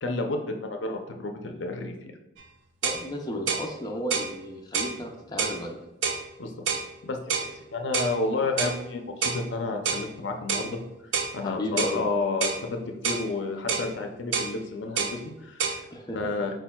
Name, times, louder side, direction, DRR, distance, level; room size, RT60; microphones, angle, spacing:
voice 1, 0.0-2.1 6.4-6.5 7.0-10.8 11.3-15.7 16.1-16.5, left 3 dB, 70° left, 4 dB, 0.6 m, -31 dB
sound 1, 2.4-2.5 2.8-3.0 3.5-3.7 4.1-4.3 4.7-5.0 5.4-5.6 6.0-6.2 6.7-6.9 7.3-7.5 7.9-8.1 8.6-8.8 9.2-9.4 9.8-10.1 10.5-10.7 11.1-11.3 11.8-12.0 12.4-12.6 13.0-13.3 13.7-13.9 14.3-14.5 15.0-15.2 15.6-15.8, right 5 dB, 75° right, 0.5 m, -27 dB
voice 2, 2.8-5.8 11.4-12.1 15.9-16.3, left 1 dB, 20° left, 0 dB, 0.5 m, -33 dB
4.6 x 4.3 x 2.3 m, 0.94 s
head